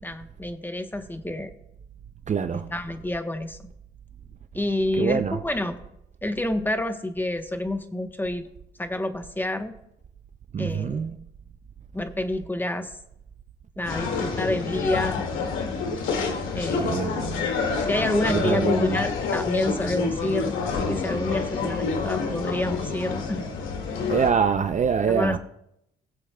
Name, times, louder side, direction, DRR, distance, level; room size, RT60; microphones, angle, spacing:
voice 1, 0.0-1.5 2.5-3.6 4.5-5.8 6.2-8.4 8.8-9.7 10.6-11.1 11.9-12.9 13.8-15.2 16.5-17.1 17.9-23.5 25.1-25.4, left 1 dB, 10° left, 1.0 m, -28 dB
voice 2, 2.3-2.7 5.0-5.4 10.5-11.1 16.8-17.4 18.3-18.9 24.1-25.4, right 6 dB, 35° right, 0.6 m, -24 dB
sound 1, 13.8-24.3, left 4 dB, 80° left, 2.1 m, -28 dB
20.5 x 7.3 x 2.3 m
cardioid pair, 90°, 20 cm